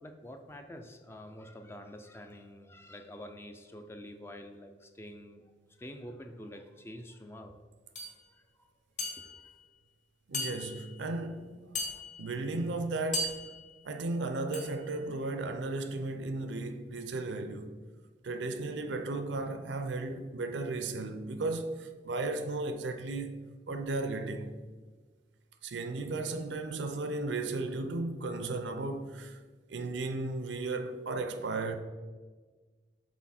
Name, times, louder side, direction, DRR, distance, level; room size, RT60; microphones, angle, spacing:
voice 1, 0.0-5.4 5.8-7.6 8.3-8.7 9.2-9.4, equal, 15° left, 0.3 m, -47 dB
sound 1, 8.0-8.2 9.0-9.5 10.3-11.0 11.8-12.4 13.1-13.8 14.5-14.9, left 2 dB, 40° left, 1.4 m, -37 dB
voice 2, 10.3-13.3 13.8-17.7 18.2-23.3 23.7-24.5 25.6-29.4 29.7-31.8, right 2 dB, 80° right, 0.5 m, -35 dB
6.1 x 4.1 x 4.2 m
head